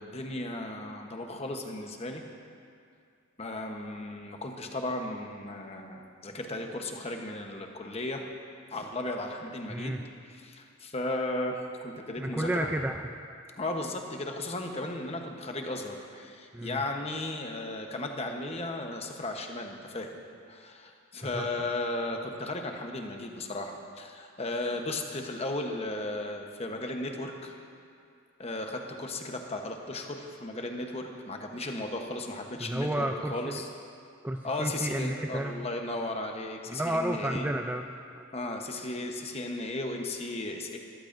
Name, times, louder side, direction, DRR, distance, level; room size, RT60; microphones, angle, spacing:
voice 1, 0.0-2.2 3.4-8.3 8.7-10.0 10.3-12.7 13.6-20.2 20.5-27.5 28.4-33.7 34.4-37.5 38.3-40.8, left 2 dB, 30° left, 3 dB, 1.0 m, -35 dB
voice 2, 9.7-10.0 12.2-13.0 16.5-16.8 21.3-21.5 32.6-33.6 34.2-35.7 36.7-38.3, right 1 dB, 10° right, 4 dB, 0.3 m, -32 dB
21.0 x 14.0 x 2.6 m, 2.4 s
head